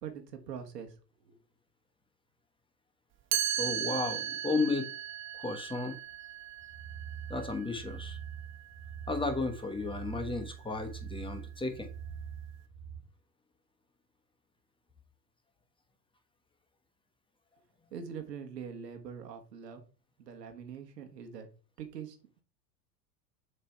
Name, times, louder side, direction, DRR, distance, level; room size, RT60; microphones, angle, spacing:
voice 1, 0.0-0.9 1.2-1.4 17.9-19.8 20.2-21.5 21.8-22.2, right 7 dB, 75° right, 6 dB, 1.3 m, -43 dB
Chime, 3.3-9.2, right 12 dB, 25° right, 0.5 m, -37 dB
voice 2, 3.6-4.9 5.3-5.9 7.3-8.2 9.1-11.9, left 3 dB, 10° left, 5 dB, 1.2 m, -33 dB
sound 1, 6.6-13.0, right 8 dB, 45° right, 1.8 m, -44 dB
7.3 x 3.3 x 4.5 m, 0.35 s
figure-of-eight pair, 75°, 49 cm